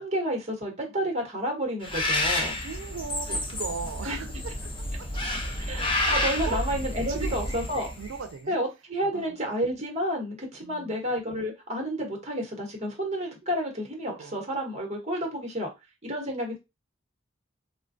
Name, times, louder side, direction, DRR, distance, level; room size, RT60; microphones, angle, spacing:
voice 1, 0.0-2.6 4.0-4.2 5.6-7.9 8.5-15.7 16.0-16.6, equal, 35° right, 0.9 m, -30 dB
Bird, 1.8-8.2, left 1 dB, 25° left, 0.6 m, -30 dB
voice 2, 2.6-4.7 5.0-5.1 5.8-6.0 6.4-6.6 7.1-7.7 8.0-8.6 9.1-9.4 10.6-11.0 14.2-14.4, right 5 dB, 85° right, 0.4 m, -38 dB
3.2 x 2.2 x 2.5 m
head